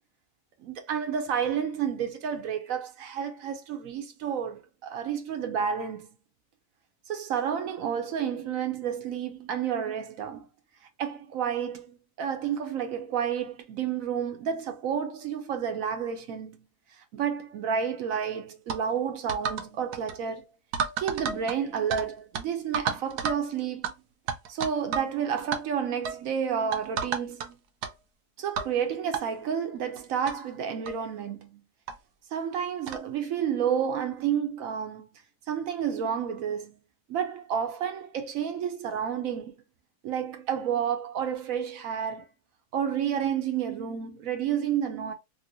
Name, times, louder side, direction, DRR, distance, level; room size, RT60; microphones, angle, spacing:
voice 1, 0.6-6.2 7.1-10.5 11.0-16.6 17.0-20.5 21.0-23.9 24.5-27.6 28.4-31.6 32.3-35.1 35.5-36.8 37.1-39.6 40.0-42.3 42.7-45.1, right 8 dB, 65° right, 1.0 m, -30 dB
sound 1, 18.7-18.8 19.3-19.7 19.9-20.2 20.7-22.1 22.3-22.4 22.7-23.4 23.8-23.9 24.3-25.1 25.4-25.6 26.1-26.2 26.7-27.5 27.8-27.9 28.6-28.7 29.1-29.2 30.0-30.1 30.3-30.4 30.9-31.0 31.9-32.0 32.9-33.1, right 6 dB, 85° right, 1.2 m, -31 dB
2.9 x 2.7 x 2.7 m
omnidirectional pair, 1.7 m